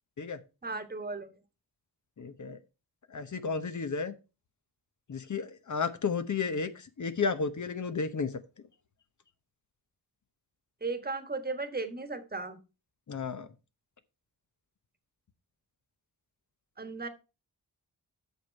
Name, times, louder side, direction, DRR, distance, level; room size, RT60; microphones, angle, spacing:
voice 1, 0.6-1.4 10.8-12.6 16.8-17.1, right 3 dB, 25° right, 9 dB, 1.4 m, -36 dB
voice 2, 2.2-2.6 3.1-4.1 5.1-8.3 13.1-13.5, left 5 dB, 50° left, 10 dB, 1.0 m, -32 dB
8.2 x 6.5 x 4.5 m, 0.29 s
cardioid pair, 75°, 39 cm